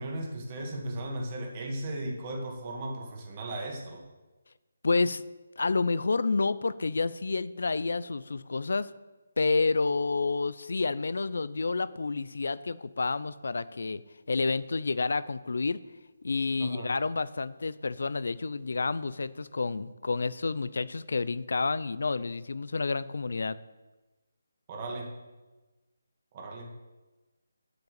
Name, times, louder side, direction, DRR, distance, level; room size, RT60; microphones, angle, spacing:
voice 1, 0.0-4.0 16.6-16.9 24.7-25.1 26.3-26.7, right 1 dB, 25° right, 1 dB, 1.8 m, -36 dB
voice 2, 4.8-5.2 5.6-8.9 9.4-14.0 14.3-15.8 16.2-23.6, left 3 dB, 70° left, 18 dB, 0.4 m, -29 dB
8.5 x 7.9 x 6.7 m, 1.2 s
hypercardioid pair, 170°, 0 cm